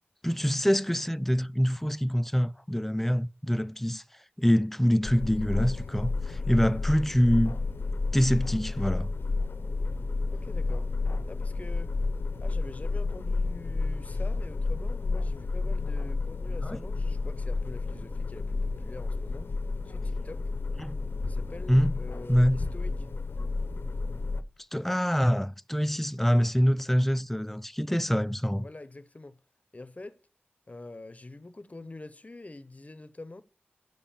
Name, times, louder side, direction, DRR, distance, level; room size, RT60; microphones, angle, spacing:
voice 1, 0.2-4.0 4.4-7.6 8.1-9.1 16.6-16.8 20.8-21.0 21.7-21.9 22.3-22.6 24.7-28.7, equal, 5° left, 0.4 m, -25 dB
sound 1, 5.0-24.4, left 3 dB, 70° left, 0.6 m, -31 dB
voice 2, 10.3-10.9 11.3-11.9 12.4-19.5 19.8-20.4 21.3-23.0 28.6-29.4 29.7-30.2 30.7-33.4, left 2 dB, 35° left, 0.7 m, -45 dB
7.8 x 7.2 x 7.1 m
wide cardioid pair, 60°, 4 cm